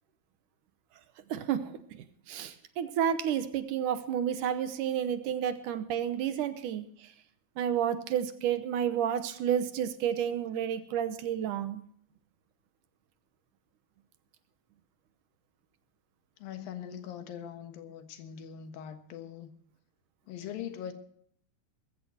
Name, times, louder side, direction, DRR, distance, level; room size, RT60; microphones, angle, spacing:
voice 1, 1.3-6.9 7.6-11.8, right 9 dB, 70° right, 10 dB, 2.2 m, -31 dB
voice 2, 16.4-19.5 20.3-20.9, left 9 dB, 70° left, 7 dB, 3.1 m, -41 dB
21.5 x 15.0 x 2.8 m, 0.62 s
omnidirectional pair, 4.4 m